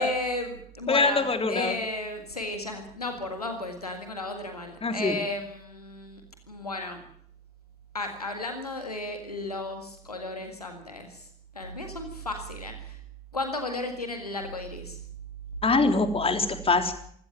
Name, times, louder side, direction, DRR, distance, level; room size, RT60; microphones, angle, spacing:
voice 1, 0.0-6.2 6.5-7.0 7.9-11.3 11.5-13.0 13.3-15.0, left 2 dB, 90° left, 6 dB, 1.7 m, -34 dB
voice 2, 0.9-1.7 4.8-5.1 15.6-16.9, left 3 dB, 30° left, 6 dB, 3.6 m, -23 dB
24.5 x 16.5 x 7.5 m, 0.64 s
figure-of-eight pair, 45°, 19 cm